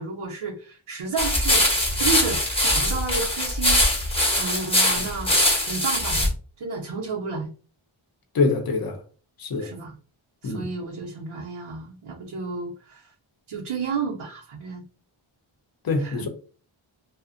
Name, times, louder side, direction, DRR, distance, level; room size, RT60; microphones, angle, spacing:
voice 1, 0.0-3.8 4.3-5.3 5.7-6.3 6.6-7.5 9.6-10.0 10.4-13.1 13.5-14.8 16.0-16.3, right 4 dB, 85° right, 0.7 m, -31 dB
sound 1, 1.2-6.3, left 1 dB, 10° left, 0.7 m, -22 dB
voice 2, 8.3-9.0 9.4-9.7 10.4-10.7 15.8-16.3, left 3 dB, 45° left, 0.6 m, -24 dB
2.4 x 2.1 x 2.4 m
wide cardioid pair, 95°, 50 cm